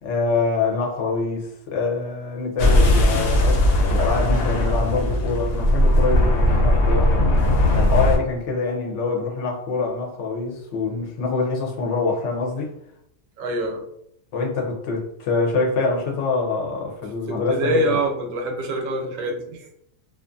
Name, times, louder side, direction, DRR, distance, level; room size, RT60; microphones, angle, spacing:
voice 1, 0.0-7.2 7.7-12.7 14.3-18.0, left 4 dB, 65° left, 0.9 m, -25 dB
sound 1, 2.6-8.2, left 1 dB, 85° left, 1.0 m, -18 dB
voice 2, 13.4-13.8 17.3-19.8, right 1 dB, 75° right, 1.0 m, -25 dB
2.4 x 2.4 x 2.5 m
omnidirectional pair, 1.4 m